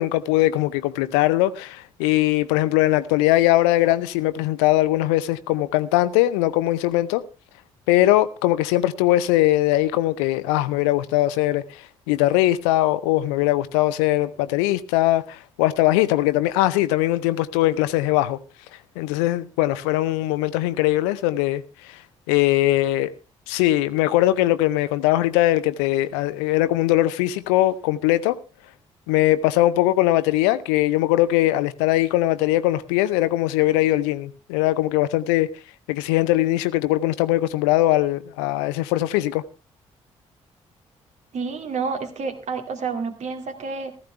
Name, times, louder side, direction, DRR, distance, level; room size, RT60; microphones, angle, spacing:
voice 1, 0.0-7.2 7.9-18.4 19.0-22.0 22.3-23.1 23.5-28.4 29.1-35.5 35.9-39.4, left 15 dB, 70° left, 0.7 m, -21 dB
voice 2, 41.3-44.0, right 5 dB, 50° right, 2.3 m, -29 dB
15.0 x 14.5 x 3.3 m
figure-of-eight pair, 40°, 16 cm